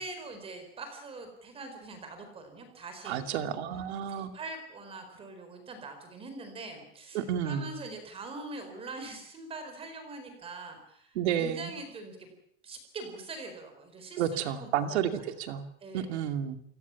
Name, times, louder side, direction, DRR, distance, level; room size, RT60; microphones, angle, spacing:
voice 1, 0.0-3.6 4.1-12.3 12.6-15.4 15.8-16.1, right 3 dB, 15° right, 7 dB, 4.4 m, -43 dB
voice 2, 3.1-4.3 7.1-7.7 11.1-11.7 14.2-15.7 15.9-16.6, right 9 dB, 70° right, 8 dB, 2.6 m, -31 dB
29.0 x 17.0 x 7.1 m, 0.66 s
supercardioid pair, 175°, 35 cm